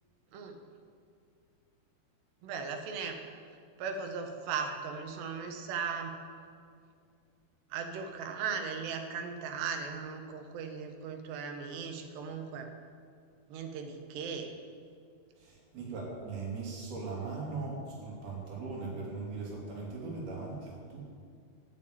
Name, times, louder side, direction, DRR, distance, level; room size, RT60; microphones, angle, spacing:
voice 1, 2.4-3.2 3.8-6.2 7.7-12.7 13.5-14.5, right 6 dB, 85° right, 5 dB, 3.4 m, -37 dB
voice 2, 15.4-21.1, right 3 dB, 65° right, -4 dB, 5.1 m, -39 dB
11.0 x 11.0 x 8.8 m, 2.3 s
omnidirectional pair, 4.7 m